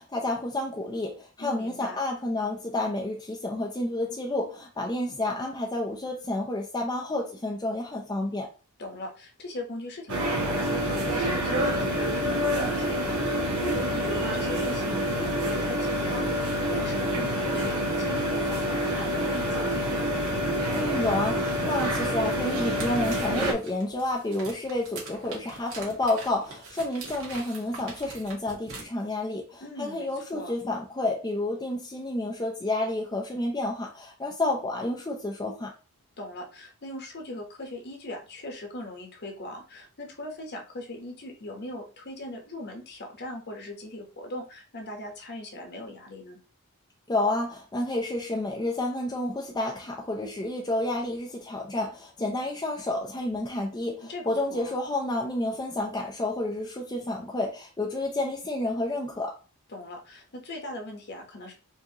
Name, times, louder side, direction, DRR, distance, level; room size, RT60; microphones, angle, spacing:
voice 1, 0.0-8.5 20.7-35.7 47.1-59.4, left 2 dB, 20° left, 0.5 m, -30 dB
voice 2, 1.4-2.0 8.8-20.1 29.6-30.5 36.2-46.4 54.1-54.7 59.7-61.5, left 1 dB, 50° left, 1.1 m, -39 dB
sound 1, 10.1-23.5, equal, 90° right, 1.0 m, -27 dB
sound 2, 21.5-28.8, right 3 dB, 65° right, 1.7 m, -43 dB
4.5 x 2.9 x 2.9 m
head